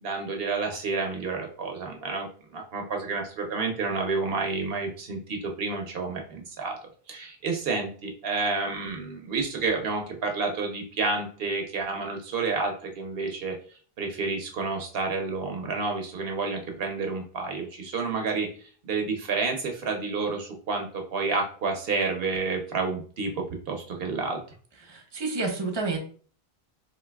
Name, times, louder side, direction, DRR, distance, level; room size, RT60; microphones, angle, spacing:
voice 1, 0.0-6.8 7.1-13.5 14.0-18.5 18.8-24.4, right 4 dB, 70° right, 2 dB, 0.8 m, -30 dB
voice 2, 24.8-26.0, right 3 dB, 30° right, 2 dB, 0.7 m, -29 dB
3.8 x 2.6 x 2.2 m, 0.44 s
omnidirectional pair, 1.1 m